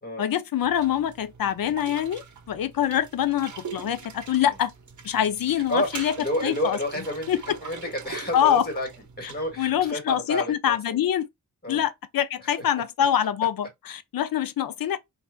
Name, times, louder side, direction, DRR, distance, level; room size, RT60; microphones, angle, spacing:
voice 1, 0.2-4.7 5.0-6.1 6.4-6.8 7.3-7.4 8.3-8.6 9.6-11.3 11.7-15.0, left 10 dB, 90° left, 0.5 m, -25 dB
sound 1, 0.6-9.9, right 5 dB, 60° right, 0.7 m, -43 dB
voice 2, 5.7-8.9 9.2-11.0 11.6-11.8, left 1 dB, 30° left, 1.7 m, -30 dB
4.3 x 2.4 x 2.2 m
wide cardioid pair, 95°, 34 cm